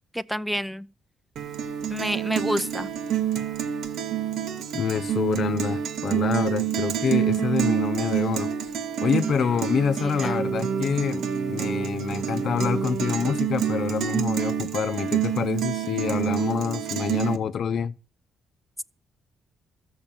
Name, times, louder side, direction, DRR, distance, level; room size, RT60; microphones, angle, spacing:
voice 1, 0.1-0.9 1.9-2.9 9.6-10.4, equal, ahead, 0.7 m, -29 dB
Guitar, 1.4-17.4, right 9 dB, 75° right, 1.8 m, -27 dB
voice 2, 4.7-8.5 9.0-11.2 11.5-17.9, left 7 dB, 60° left, 0.7 m, -27 dB
14.0 x 6.6 x 8.8 m
cardioid pair, 90°, 0 cm